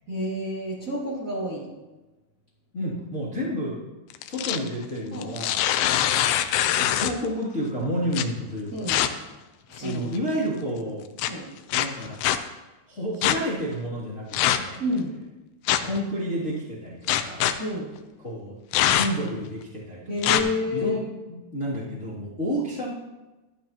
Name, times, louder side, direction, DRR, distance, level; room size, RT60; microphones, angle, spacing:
voice 1, 0.1-1.7 5.1-5.4 8.7-9.1 9.7-10.1 11.3-11.6 14.8-15.2 17.6-17.9 20.1-21.1, left 1 dB, 25° right, -6 dB, 2.1 m, -29 dB
voice 2, 2.7-3.8 4.3-5.6 6.8-9.0 9.8-11.1 11.7-12.2 12.9-14.8 15.8-17.5 18.2-18.6 18.9-22.9, equal, 25° left, -9 dB, 2.0 m, -30 dB
sound 1, 4.1-4.7 5.2-7.3 8.1-8.2 8.9-9.1 9.8-10.2 11.2-11.3 11.7-12.4 13.2-13.4 14.3-14.8 15.7-16.0 17.1-17.5 18.7-19.3 20.2-20.4, left 12 dB, 90° left, 2.8 m, -23 dB
14.0 x 11.5 x 2.9 m, 1.1 s
omnidirectional pair, 4.8 m